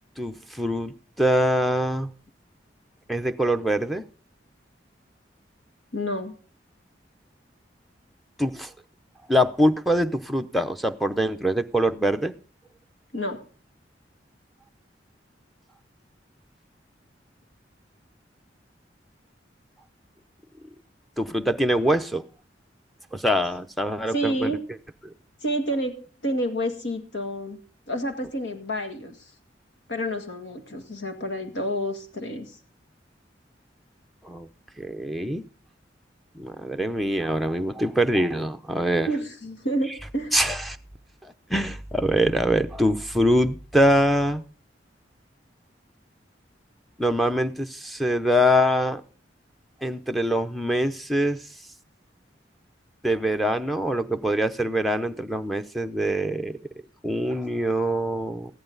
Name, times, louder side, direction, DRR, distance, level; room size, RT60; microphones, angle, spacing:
voice 1, 0.2-2.1 3.1-4.1 8.4-8.7 9.3-12.3 21.2-22.2 23.1-24.5 25.1-25.2 34.2-34.5 34.8-35.5 36.3-39.1 40.3-40.8 41.5-44.4 47.0-49.0 49.8-51.4 53.0-56.6 57.0-58.5, equal, ahead, 6 dB, 0.6 m, -24 dB
voice 2, 5.9-6.4 13.1-13.4 24.1-24.6 25.4-27.6 27.9-29.1 29.9-32.5 39.1-40.4 57.3-57.4, equal, 85° left, 6 dB, 2.0 m, -29 dB
14.5 x 11.0 x 4.0 m, 0.39 s
head